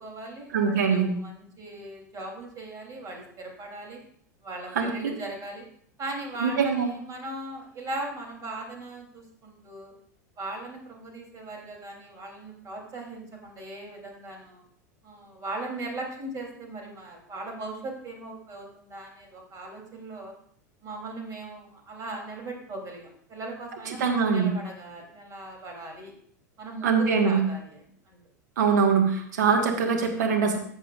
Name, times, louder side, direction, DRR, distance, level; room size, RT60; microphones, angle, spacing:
voice 1, 0.0-4.0 4.4-5.6 6.0-9.9 10.4-14.6 15.0-20.3 20.8-26.1 26.6-28.2, right 2 dB, 35° right, 0 dB, 3.5 m, -39 dB
voice 2, 0.5-1.1 4.7-5.1 6.4-6.9 24.0-24.5 26.8-27.4 28.6-30.6, right 5 dB, 75° right, 3 dB, 1.8 m, -23 dB
14.0 x 7.5 x 2.6 m, 0.63 s
hypercardioid pair, 90°, 10 cm